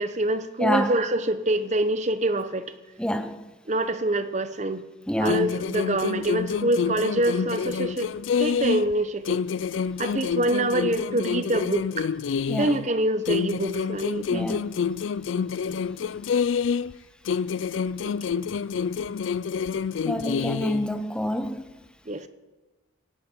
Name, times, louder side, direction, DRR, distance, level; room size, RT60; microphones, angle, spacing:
voice 1, 0.0-2.7 3.7-4.9 5.2-8.1 8.4-9.4 10.0-12.1 12.6-14.5 18.0-18.5 22.1-22.3, right 1 dB, 35° right, 0.9 m, -26 dB
voice 2, 3.0-3.5 5.1-5.4 12.5-12.8 14.3-14.6 20.0-21.7, equal, 5° left, 0.8 m, -27 dB
sound 1, 5.3-9.0 9.3-12.9 13.3-17.0 17.3-20.9, left 6 dB, 80° left, 0.4 m, -27 dB
18.5 x 14.0 x 4.5 m
head